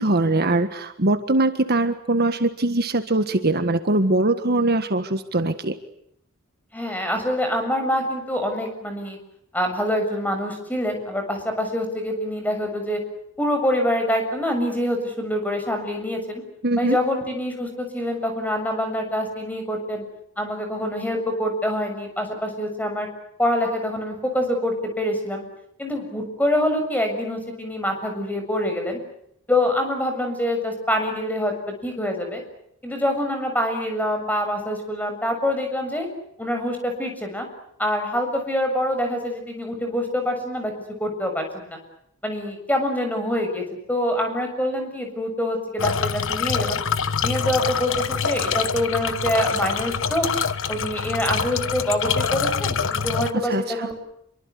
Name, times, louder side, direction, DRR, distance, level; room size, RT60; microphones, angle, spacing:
voice 1, 0.0-5.7 16.6-17.0 53.4-53.9, right 2 dB, 45° right, 8 dB, 1.6 m, -22 dB
voice 2, 6.7-9.2 9.5-13.0 13.4-16.4 16.8-20.0 20.4-23.1 23.4-25.5 25.8-29.0 29.5-32.4 32.8-36.1 36.4-37.5 37.8-40.7 41.0-41.8 42.2-46.8 47.2-50.3 50.7-53.9, left 1 dB, 10° left, 5 dB, 7.1 m, -25 dB
sound 1, 45.8-53.3, left 6 dB, 60° left, 1.3 m, -25 dB
27.5 x 24.0 x 8.4 m, 0.73 s
head